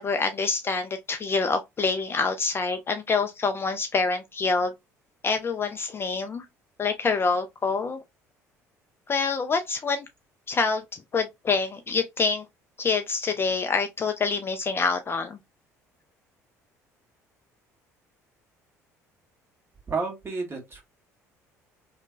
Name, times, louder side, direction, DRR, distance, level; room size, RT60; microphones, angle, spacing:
voice 1, 0.0-4.7 5.2-6.5 6.8-8.0 9.1-10.1 10.5-12.4 12.8-15.4, left 4 dB, 30° left, 0.4 m, -26 dB
voice 2, 19.9-20.8, right 4 dB, 30° right, 1.5 m, -31 dB
3.1 x 2.1 x 2.4 m
figure-of-eight pair, 55°, 8 cm